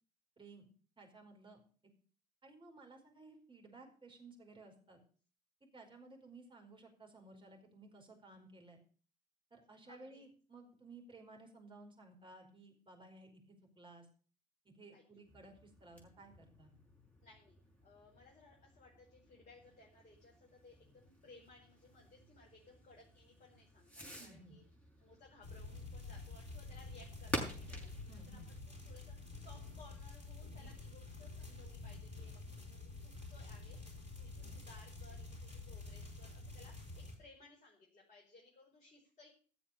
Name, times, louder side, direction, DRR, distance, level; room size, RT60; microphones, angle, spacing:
voice 1, 0.4-0.7 1.0-1.6 2.4-5.0 5.7-8.8 9.5-14.1 14.6-16.7 24.2-24.6 28.1-28.5 34.4-34.6, right 2 dB, 25° right, 1 dB, 4.9 m, -57 dB
voice 2, 9.8-10.2 14.9-15.0 17.2-17.6 17.8-24.6 25.0-28.6 28.8-39.3, left 3 dB, 35° left, -2 dB, 5.0 m, -62 dB
Fireworks, 15.2-29.8, equal, 5° left, 6.1 m, -50 dB
sound 1, 25.4-37.2, left 3 dB, 90° right, 3.5 m, -49 dB
17.0 x 7.1 x 6.7 m, 0.41 s
figure-of-eight pair, 55°, 21 cm